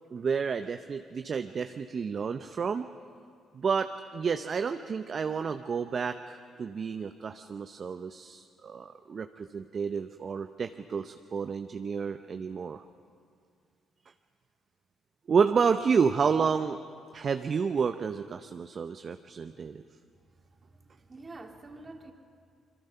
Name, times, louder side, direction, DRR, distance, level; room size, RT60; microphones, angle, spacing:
voice 1, 0.1-2.9 3.5-12.8 15.3-16.8 17.1-19.8, right 6 dB, 50° right, 8 dB, 0.7 m, -30 dB
voice 2, 20.6-22.1, right 2 dB, 35° right, 2 dB, 2.9 m, -47 dB
26.0 x 22.5 x 5.7 m, 2.2 s
hypercardioid pair, 50°, 0 cm